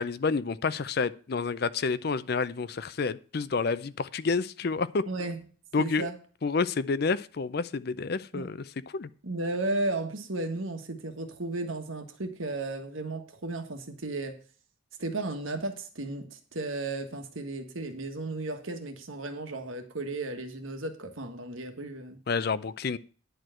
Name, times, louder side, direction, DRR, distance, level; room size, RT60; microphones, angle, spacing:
voice 1, 0.0-5.0 5.7-6.1 6.4-8.6 8.9-9.1 22.3-23.0, left 4 dB, 50° left, 0.5 m, -29 dB
voice 2, 5.1-5.4 5.8-6.2 8.3-8.5 9.2-14.4 15.0-22.2, right 2 dB, 80° right, 1.6 m, -34 dB
10.5 x 4.6 x 7.7 m
head